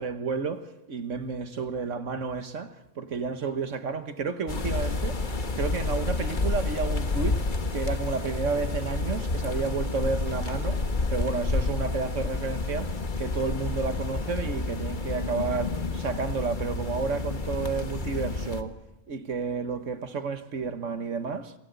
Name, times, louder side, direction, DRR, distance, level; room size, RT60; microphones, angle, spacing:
voice 1, 0.0-5.2 5.6-7.5 7.7-18.8 19.1-21.5, right 4 dB, 70° right, 1.7 m, -31 dB
sound 1, 4.5-18.6, left 3 dB, 40° left, 1.5 m, -29 dB
27.5 x 17.0 x 8.1 m
omnidirectional pair, 1.3 m